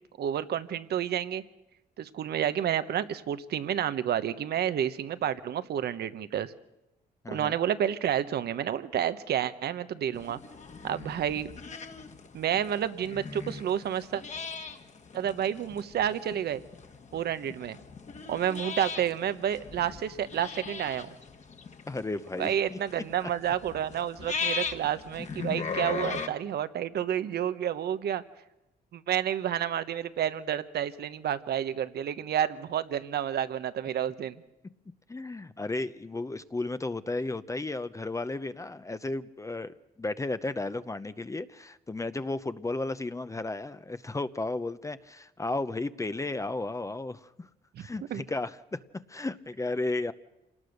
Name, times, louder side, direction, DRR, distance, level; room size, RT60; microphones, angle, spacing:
voice 1, 0.2-1.4 2.0-6.5 7.3-10.4 10.8-11.5 12.3-14.2 15.1-16.6 17.1-17.8 18.3-21.2 22.4-28.2 28.9-34.4 48.1-48.2, right 10 dB, 75° right, 12 dB, 1.1 m, -30 dB
sound 1, 10.1-26.3, left 5 dB, 45° left, 1.8 m, -39 dB
voice 2, 21.9-22.8 23.2-23.3 35.1-47.5 47.8-48.8 49.1-50.1, left 2 dB, 20° left, 12 dB, 0.7 m, -34 dB
26.5 x 18.5 x 6.6 m, 0.92 s
cardioid pair, 90°, 17 cm